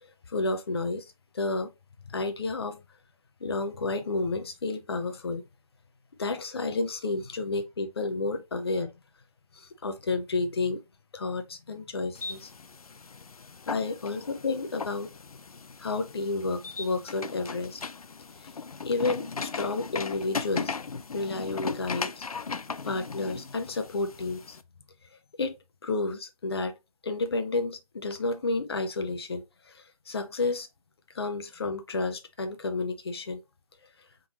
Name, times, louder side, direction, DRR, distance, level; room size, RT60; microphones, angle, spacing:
voice 1, 0.3-1.1 1.3-1.7 2.1-2.8 3.4-5.4 6.2-8.9 9.6-10.8 11.1-12.5 13.7-15.1 15.8-17.8 18.8-20.7 21.1-22.2 22.8-24.6 25.4-25.6 25.8-26.7 27.0-30.7 31.1-33.4, left 3 dB, 45° left, 0.8 m, -31 dB
sound 1, 12.1-24.6, left 5 dB, 80° left, 0.5 m, -38 dB
4.4 x 3.8 x 3.0 m
figure-of-eight pair, 160°, 19 cm